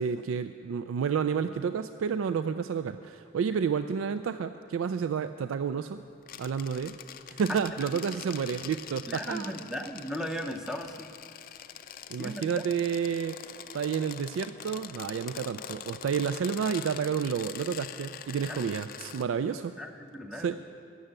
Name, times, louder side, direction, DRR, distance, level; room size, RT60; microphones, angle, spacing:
voice 1, 0.0-6.0 6.4-6.9 7.3-9.5 12.1-13.4 13.7-19.7 20.3-20.6, right 6 dB, 85° right, 10 dB, 0.3 m, -30 dB
sound 1, 6.2-19.2, left 9 dB, 45° left, 0.4 m, -44 dB
voice 2, 9.1-11.1 12.2-12.6 18.5-18.6 19.8-20.5, equal, 5° right, 5 dB, 0.6 m, -36 dB
13.0 x 7.0 x 8.8 m, 2.5 s
head